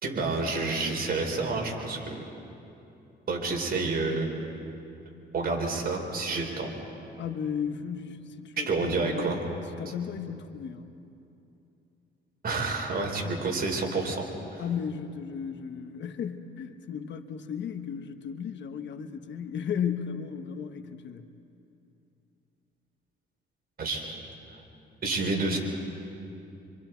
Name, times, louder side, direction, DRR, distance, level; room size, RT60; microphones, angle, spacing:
voice 1, 0.0-2.3 3.3-4.5 5.3-6.7 8.7-9.5 12.4-14.3 14.5-14.6 23.8-24.3 25.0-25.6, right 3 dB, 50° right, 1 dB, 4.3 m, -29 dB
voice 2, 7.2-9.4 9.7-11.0 14.6-21.3, left 7 dB, 65° left, 8 dB, 1.2 m, -35 dB
27.0 x 25.5 x 4.6 m, 2.8 s
cardioid pair, 90°, 20 cm